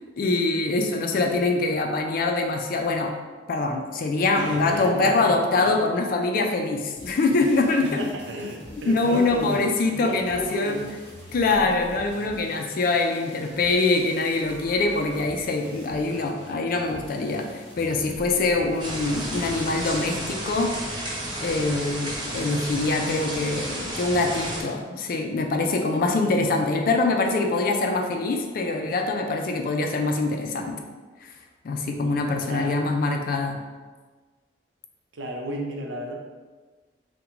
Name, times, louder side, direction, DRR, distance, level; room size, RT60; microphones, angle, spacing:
voice 1, 0.2-3.1 3.5-8.0 8.9-10.8 11.3-20.7 21.4-30.8 31.2-31.3 31.6-33.6, left 3 dB, 50° left, 3 dB, 0.3 m, -24 dB
voice 2, 4.4-5.8 7.3-7.5 7.8-10.9 11.6-11.7 32.4-32.8 35.1-36.1, right 1 dB, 85° right, 1 dB, 0.5 m, -33 dB
sound 1, 6.9-20.2, equal, 15° left, 0.9 m, -45 dB
sound 2, 18.8-24.6, right 1 dB, 25° right, 0.7 m, -32 dB
3.6 x 2.2 x 3.0 m, 1.4 s
head